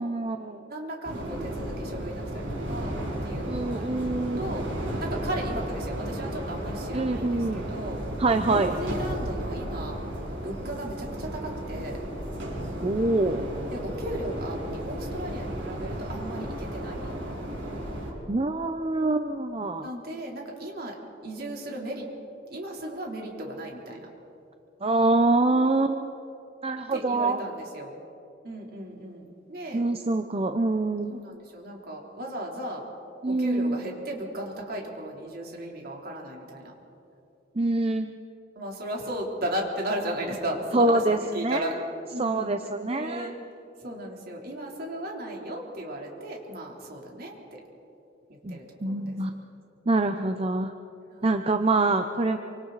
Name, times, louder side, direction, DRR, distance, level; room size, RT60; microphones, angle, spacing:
voice 1, 0.0-0.7 3.4-4.5 6.9-7.7 8.2-8.7 12.8-13.5 18.3-19.9 24.8-26.2 26.6-27.4 29.7-31.1 33.2-33.8 37.5-38.1 40.7-41.7 42.2-43.3 48.4-49.5 49.9-50.7 51.2-52.4, right 2 dB, 30° right, 7 dB, 0.7 m, -25 dB
voice 2, 0.7-2.9 3.2-8.0 8.5-10.0 10.4-12.0 13.7-17.1 19.8-22.1 22.5-24.1 26.9-27.9 28.4-29.8 31.1-32.8 33.3-36.7 38.6-41.7 42.1-43.3 43.8-47.6 48.3-49.1 51.1-51.4, right 1 dB, 55° right, -1 dB, 3.6 m, -36 dB
sound 1, 1.0-18.1, right 1 dB, 80° right, 5.9 m, -34 dB
27.5 x 25.5 x 4.1 m, 2.8 s
head